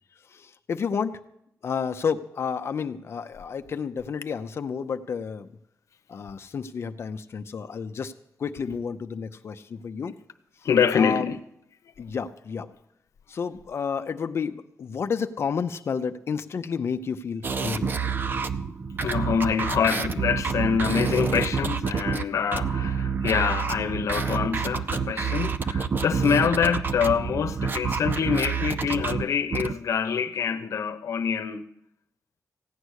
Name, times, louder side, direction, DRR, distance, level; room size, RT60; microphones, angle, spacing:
voice 1, 0.3-1.2 1.6-5.5 6.1-8.1 8.4-10.2 10.9-11.3 12.0-12.7 13.3-17.9, left 6 dB, 55° left, 0.7 m, -30 dB
voice 2, 10.6-11.4 19.0-31.7, left 7 dB, 75° left, 0.9 m, -25 dB
sound 1, 17.4-29.7, right 5 dB, 40° right, 0.5 m, -28 dB
16.0 x 9.6 x 6.5 m
wide cardioid pair, 125°, 5 cm